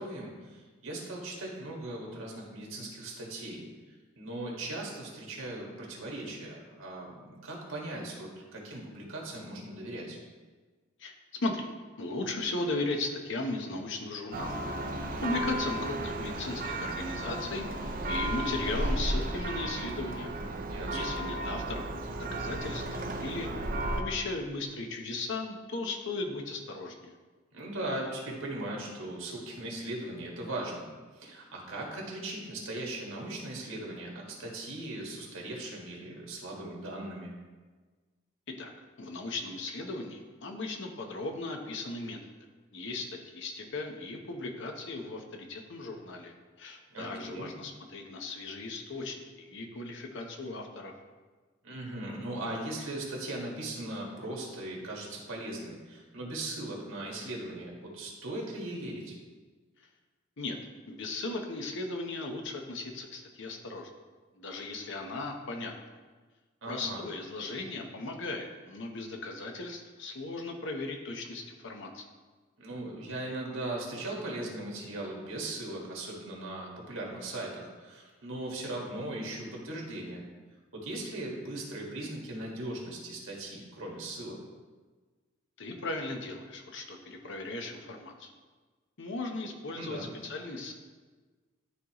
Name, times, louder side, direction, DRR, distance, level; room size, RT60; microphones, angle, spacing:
voice 1, 0.0-3.6 4.2-10.2 20.7-21.2 27.5-30.8 31.1-37.3 46.9-47.5 51.6-59.1 66.6-67.0 72.6-80.2 80.7-84.4 89.7-90.1, right 1 dB, 80° right, -2 dB, 1.7 m, -39 dB
voice 2, 11.0-11.7 12.0-14.5 14.9-20.3 20.9-21.9 22.1-23.5 24.0-27.1 38.5-38.7 39.0-42.2 42.7-50.9 60.4-60.6 60.9-63.9 64.3-65.7 66.7-72.0 85.6-88.3 89.0-90.7, left 2 dB, 65° left, 3 dB, 0.9 m, -37 dB
Church bell, 14.3-24.0, right 1 dB, 45° right, 0.6 m, -34 dB
11.5 x 4.0 x 3.0 m, 1.4 s
head